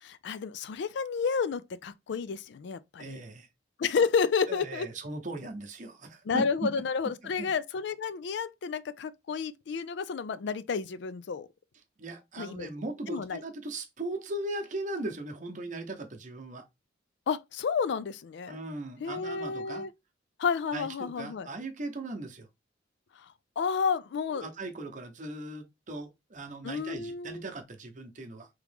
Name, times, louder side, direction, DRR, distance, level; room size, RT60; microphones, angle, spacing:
voice 1, 0.0-3.2 3.8-4.9 6.3-11.5 12.4-12.7 13.1-13.4 17.3-18.6 19.0-19.9 20.4-21.5 23.6-24.5 26.6-27.4, left 5 dB, 60° left, 0.4 m, -31 dB
voice 2, 3.0-3.5 4.5-6.7 7.4-7.5 12.0-16.6 18.5-19.8 20.7-22.5 24.3-28.5, right 2 dB, 40° right, 0.8 m, -38 dB
3.6 x 3.1 x 3.4 m
head